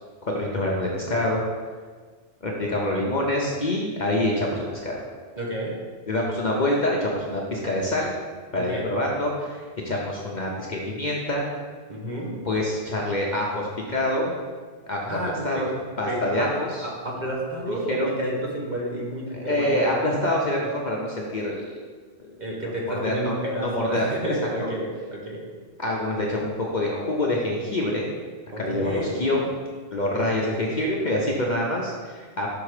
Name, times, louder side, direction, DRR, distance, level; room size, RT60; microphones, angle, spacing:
voice 1, 0.2-1.4 2.4-5.0 6.1-8.1 8.5-11.5 12.4-14.4 14.9-15.2 15.4-15.7 16.0-16.8 17.7-18.1 19.3-21.7 22.6-24.1 25.8-28.1 28.6-29.5 29.9-32.6, left 1 dB, 45° left, -2 dB, 0.8 m, -26 dB
voice 2, 5.4-5.8 8.5-9.0 11.9-12.4 15.1-15.7 16.1-20.0 22.4-25.4 28.5-29.3 30.0-30.3, right 1 dB, 40° right, -3 dB, 1.1 m, -30 dB
6.0 x 4.4 x 4.9 m, 1.5 s
omnidirectional pair, 1.3 m